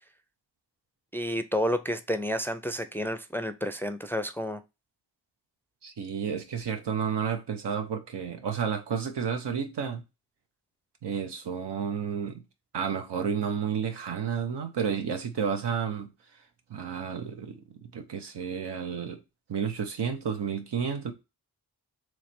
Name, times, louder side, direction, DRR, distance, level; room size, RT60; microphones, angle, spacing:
voice 1, 1.1-4.6, equal, 5° left, 0.4 m, -30 dB
voice 2, 5.8-10.0 11.0-12.4 12.7-16.1 16.7-17.6 17.9-19.2 19.5-21.1, right 7 dB, 85° right, 0.9 m, -31 dB
3.2 x 3.1 x 4.3 m
cardioid pair, 55°, 40 cm